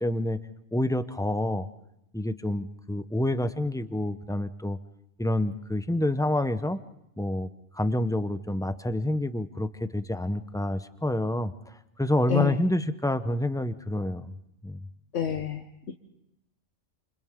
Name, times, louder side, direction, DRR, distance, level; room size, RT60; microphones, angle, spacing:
voice 1, 0.0-0.4 0.7-1.7 2.1-4.8 5.2-6.8 7.2-14.3 14.6-14.8, left 1 dB, 5° left, 11 dB, 0.4 m, -28 dB
voice 2, 12.3-12.6 15.1-15.9, left 8 dB, 75° left, 6 dB, 1.4 m, -29 dB
28.5 x 28.0 x 3.6 m, 0.81 s
omnidirectional pair, 1.3 m